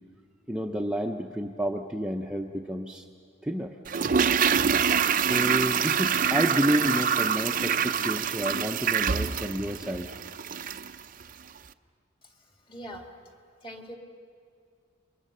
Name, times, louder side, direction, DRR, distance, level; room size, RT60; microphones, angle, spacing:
voice 1, 0.5-3.1 3.4-3.8 5.2-10.1, equal, 5° right, 1 dB, 0.7 m, -30 dB
Toilet flush, 3.9-10.9 11.2-11.3, right 7 dB, 40° right, 0.5 m, -25 dB
voice 2, 12.2-13.2 13.6-14.0, equal, 25° left, 2 dB, 2.4 m, -43 dB
29.0 x 23.0 x 6.8 m, 2.3 s
head